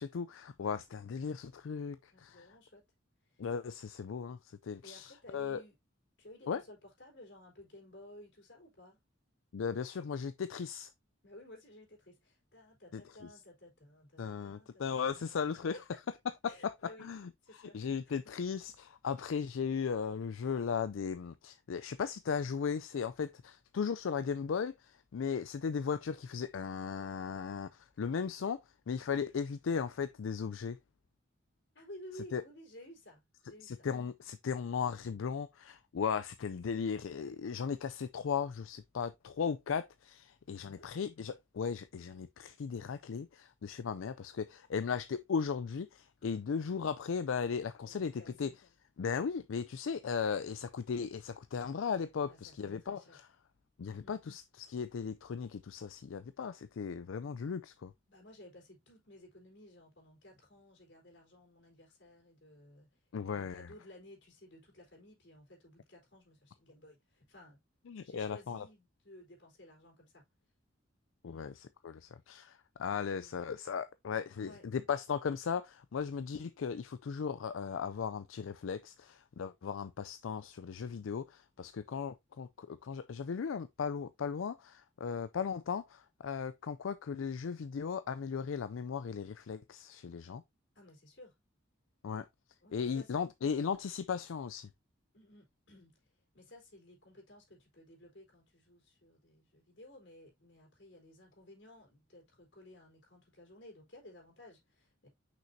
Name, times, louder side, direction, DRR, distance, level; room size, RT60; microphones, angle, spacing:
voice 1, 0.0-2.5 3.4-5.6 6.5-6.6 9.5-10.9 12.9-13.3 14.2-15.8 16.4-30.8 32.3-32.4 33.6-48.5 49.0-53.3 53.8-57.9 63.1-63.7 67.9-68.7 71.2-90.4 92.0-92.3 92.7-94.7, left 6 dB, 85° left, 0.4 m, -37 dB
voice 2, 2.1-2.8 3.3-3.4 4.8-5.7 6.2-9.0 11.2-15.5 15.7-15.8 16.5-17.1 17.4-17.9 31.7-33.9 40.5-40.9 47.8-48.6 52.2-53.2 53.8-54.1 58.1-62.9 63.2-67.6 68.0-70.2 71.2-71.5 73.1-73.3 74.3-74.6 90.8-91.3 92.6-93.1 95.1-95.9 96.3-105.1, left 1 dB, 60° left, 3.9 m, -55 dB
6.0 x 5.8 x 2.7 m
head